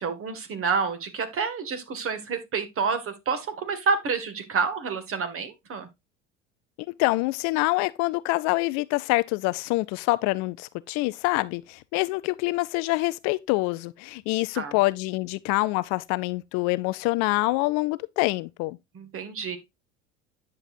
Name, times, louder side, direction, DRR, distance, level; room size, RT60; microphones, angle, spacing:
voice 1, 0.0-5.9 14.5-14.8 18.9-19.6, right 5 dB, 35° right, 1.9 m, -28 dB
voice 2, 7.0-18.8, left 22 dB, 50° left, 0.4 m, -26 dB
9.8 x 6.6 x 2.6 m
hypercardioid pair, 70°, 36 cm